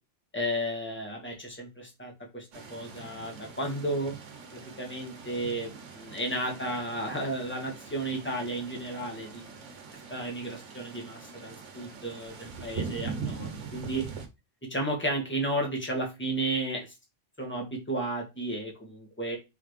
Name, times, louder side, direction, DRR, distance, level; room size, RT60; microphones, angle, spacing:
voice 1, 0.3-4.1 4.5-9.3 10.1-14.0 14.7-16.9 17.4-19.4, right 1 dB, 10° left, 0 dB, 1.5 m, -33 dB
sound 1, 2.5-14.3, right 5 dB, 85° right, 1.2 m, -42 dB
4.1 x 3.9 x 3.3 m, 0.24 s
omnidirectional pair, 1.2 m